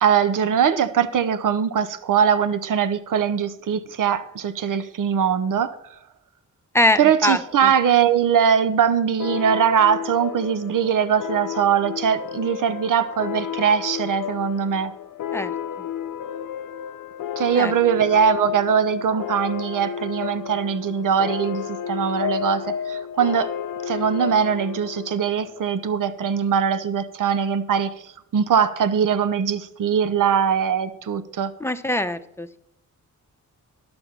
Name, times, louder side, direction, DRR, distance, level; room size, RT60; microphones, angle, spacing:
voice 1, 0.0-5.7 7.0-14.9 17.4-23.5 23.9-31.5, right 8 dB, 75° right, 12 dB, 0.8 m, -21 dB
voice 2, 6.7-7.7 15.3-15.5 17.5-17.7 31.6-32.6, left 1 dB, 10° left, 9 dB, 0.8 m, -23 dB
sound 1, 9.2-26.3, left 8 dB, 75° left, 0.6 m, -32 dB
11.5 x 7.0 x 5.9 m, 0.79 s
cardioid pair, 85°, 32 cm